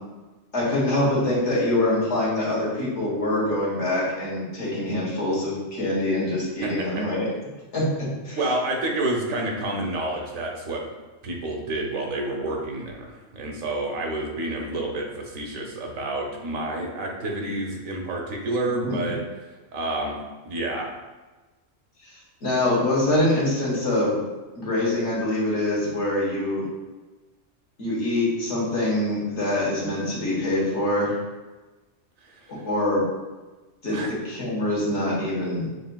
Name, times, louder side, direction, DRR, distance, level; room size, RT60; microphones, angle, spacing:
voice 1, 0.5-7.3 7.7-8.4 18.8-19.1 22.4-24.2 24.6-26.6 27.8-31.1 32.6-33.0 33.8-35.9, left 1 dB, 65° left, -6 dB, 1.5 m, -24 dB
voice 2, 6.6-7.0 8.4-10.8 11.2-19.2 19.7-20.2 20.5-20.9 33.9-34.1, right 2 dB, 90° right, 0 dB, 1.2 m, -29 dB
6.3 x 2.6 x 2.2 m, 1.2 s
omnidirectional pair, 1.3 m